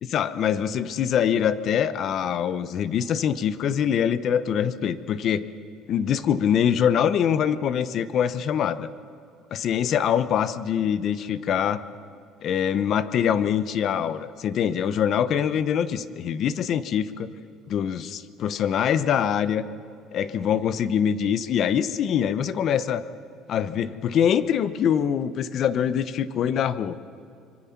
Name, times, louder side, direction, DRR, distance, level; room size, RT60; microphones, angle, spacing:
voice 1, 0.0-5.4 5.9-8.9 9.5-11.8 12.4-17.3 17.7-19.6 20.1-23.0 23.5-27.0, left 8 dB, 45° left, 14 dB, 0.9 m, -24 dB
26.0 x 24.5 x 5.9 m, 2.4 s
cardioid pair, 135°, 0 cm